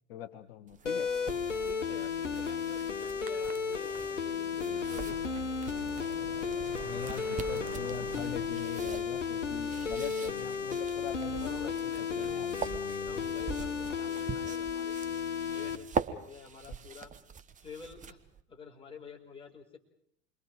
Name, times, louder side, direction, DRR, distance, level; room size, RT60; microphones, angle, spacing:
voice 1, 0.1-1.1 6.8-12.5 13.1-13.3, left 11 dB, 55° left, 10 dB, 1.1 m, -42 dB
sound 1, 0.7-18.4, right 6 dB, 20° right, 1.1 m, -43 dB
sound 2, 0.9-15.8, left 6 dB, 85° left, 1.2 m, -34 dB
voice 2, 1.6-5.7 11.4-15.0 15.5-17.1 17.6-18.2 18.5-19.8, left 5 dB, 15° left, -1 dB, 5.2 m, -49 dB
sound 3, 4.8-11.4, right 8 dB, 60° right, 5.9 m, -49 dB
28.5 x 23.5 x 4.8 m, 0.63 s
figure-of-eight pair, 80°, 36 cm